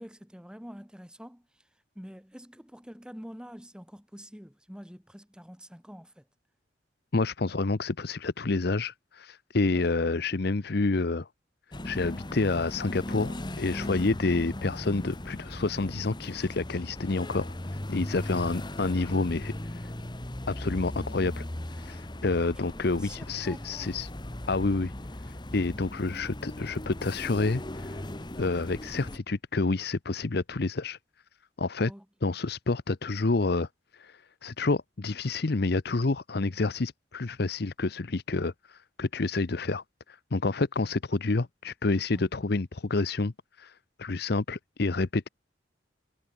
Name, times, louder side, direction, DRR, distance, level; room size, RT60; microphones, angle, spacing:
voice 1, 0.0-1.4 1.9-6.2 9.7-9.9 22.7-24.0 26.1-26.2 31.9-32.3 42.1-42.3, equal, 5° right, 3.0 m, -46 dB
voice 2, 7.1-11.3 11.8-17.5 17.9-19.8 20.5-21.4 21.8-24.1 24.5-24.9 25.3-28.0 28.4-31.0 31.6-31.9 32.2-33.7 33.9-43.3 43.6-43.7 44.0-45.3, left 3 dB, 60° left, 0.8 m, -29 dB
sound 1, 11.7-29.2, left 1 dB, 25° left, 1.3 m, -38 dB
head